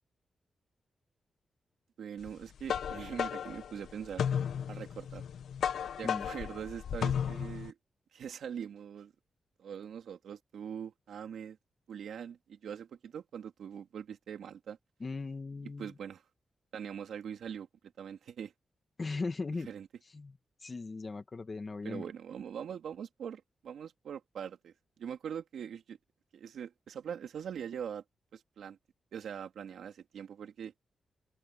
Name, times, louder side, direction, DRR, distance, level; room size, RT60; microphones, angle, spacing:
voice 1, 2.0-4.3 4.7-5.2 6.0-7.8 8.1-9.1 9.6-11.6 11.9-14.8 15.8-16.2 16.7-17.7 18.0-18.5 19.7-19.9 21.8-24.7 25.0-26.0 26.3-28.0 28.3-28.8 29.1-30.7, right 8 dB, 85° right, 3.0 m, -42 dB
sound 1, 2.3-7.7, left 8 dB, 90° left, 1.0 m, -34 dB
voice 2, 15.0-15.9 19.0-19.7 20.1-22.0, left 3 dB, 30° left, 1.7 m, -38 dB
open air
wide cardioid pair, 160°, 0 cm